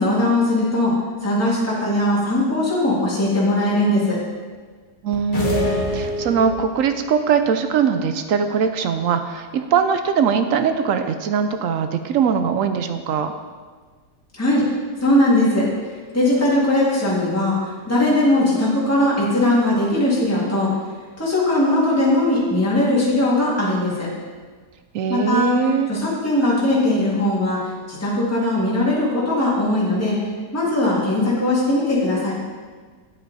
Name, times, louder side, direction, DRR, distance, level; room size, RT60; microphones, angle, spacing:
voice 1, 0.0-4.2 14.4-14.6 15.0-15.7 16.1-20.7 21.2-24.1 25.1-25.6 25.9-30.2 30.5-32.3, left 1 dB, 10° left, -7 dB, 2.1 m, -19 dB
voice 2, 5.0-13.3 24.9-25.9, right 7 dB, 70° right, 8 dB, 0.8 m, -21 dB
sound 1, 5.3-6.9, left 2 dB, 30° left, 1.3 m, -24 dB
8.9 x 8.5 x 4.1 m, 1.5 s
omnidirectional pair, 1.9 m